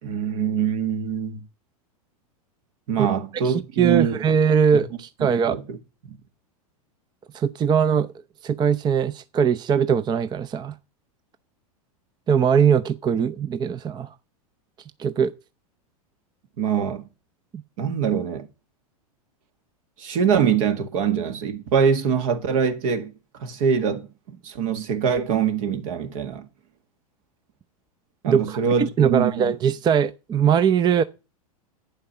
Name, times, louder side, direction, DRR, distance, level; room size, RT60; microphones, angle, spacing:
voice 1, 0.0-1.5 2.9-4.2 5.2-5.8 6.0-6.2 16.6-17.1 17.8-18.5 20.0-26.5 28.2-29.6, right 7 dB, 60° right, 2.0 m, -24 dB
voice 2, 3.4-5.6 7.3-8.1 8.4-10.7 12.3-14.1 15.0-15.3 17.5-17.6 28.3-31.0, right 7 dB, 25° right, 0.6 m, -21 dB
11.5 x 9.0 x 5.7 m
hypercardioid pair, 105°, 19 cm